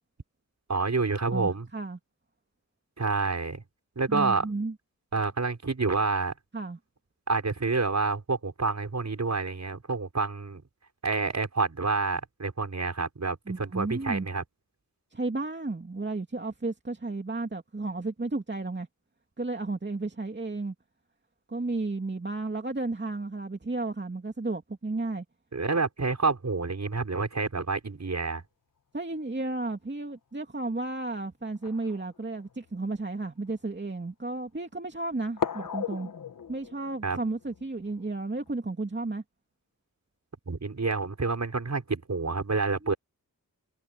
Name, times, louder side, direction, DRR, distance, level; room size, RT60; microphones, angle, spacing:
voice 1, 0.7-1.7 3.0-3.6 4.0-4.4 5.1-6.3 7.3-10.6 11.0-14.4 25.5-28.4 37.0-37.2 40.5-42.9, right 4 dB, 50° right, 6.2 m, -28 dB
voice 2, 1.3-2.0 4.1-4.7 6.5-6.8 13.5-14.3 15.1-18.9 19.4-20.7 21.5-25.2 28.9-36.1 36.5-39.2 42.8-42.9, right 2 dB, 30° right, 2.7 m, -33 dB
sound 1, 30.1-30.2 31.4-32.7 33.5-33.6 35.4-38.5, left 7 dB, 60° left, 1.8 m, -37 dB
cardioid pair, 55°, 35 cm